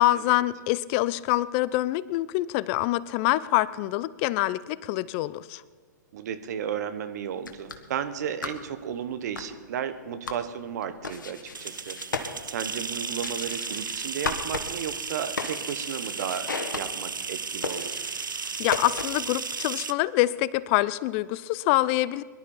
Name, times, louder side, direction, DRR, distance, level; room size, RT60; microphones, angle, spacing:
voice 1, 0.0-5.6 18.6-22.2, left 17 dB, 40° left, 18 dB, 0.5 m, -25 dB
voice 2, 6.1-12.0 12.4-18.0, right 8 dB, 60° right, 10 dB, 1.3 m, -34 dB
sound 1, 7.3-19.4, left 4 dB, 80° left, 1.6 m, -37 dB
sound 2, 11.5-19.9, right 5 dB, 90° right, 0.6 m, -34 dB
22.5 x 12.0 x 4.5 m, 1.5 s
hypercardioid pair, 115°, 10 cm